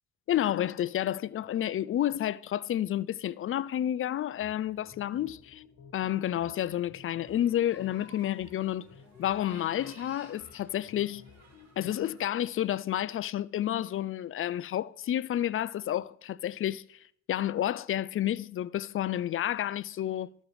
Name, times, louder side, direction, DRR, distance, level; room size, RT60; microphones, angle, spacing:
voice 1, 0.3-5.6 5.9-8.9 9.2-11.3 11.8-20.3, left 12 dB, 45° left, 0.4 m, -30 dB
sound 1, 4.0-12.0, left 6 dB, 65° left, 1.5 m, -55 dB
sound 2, 7.2-12.5, right 2 dB, 60° right, 2.6 m, -56 dB
12.0 x 6.3 x 4.8 m
cardioid pair, 90°, 30 cm